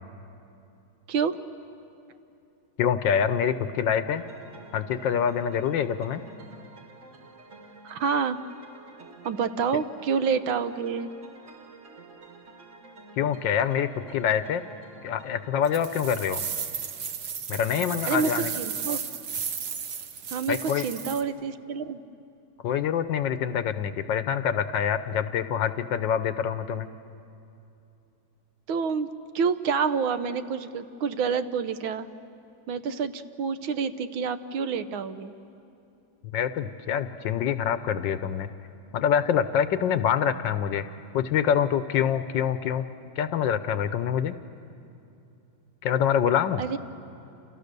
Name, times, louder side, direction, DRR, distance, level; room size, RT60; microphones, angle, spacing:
voice 1, 1.1-1.4 7.8-8.4 9.2-11.1 18.1-18.3 18.6-19.0 20.3-22.0 28.7-29.1 29.3-32.1 32.7-35.3 46.6-46.8, right 6 dB, 75° right, 11 dB, 1.6 m, -28 dB
voice 2, 2.8-4.2 4.7-6.2 13.2-14.6 15.0-16.5 17.5-18.5 20.5-20.8 22.6-26.9 36.3-38.5 38.9-40.8 41.1-42.8 43.2-44.3 45.8-46.6, left 8 dB, 70° left, 11 dB, 1.4 m, -25 dB
sound 1, 4.1-16.5, right 3 dB, 40° right, 1.8 m, -49 dB
sound 2, 15.6-21.2, right 7 dB, 55° right, 1.5 m, -34 dB
29.5 x 28.0 x 6.7 m, 2.7 s
omnidirectional pair, 2.3 m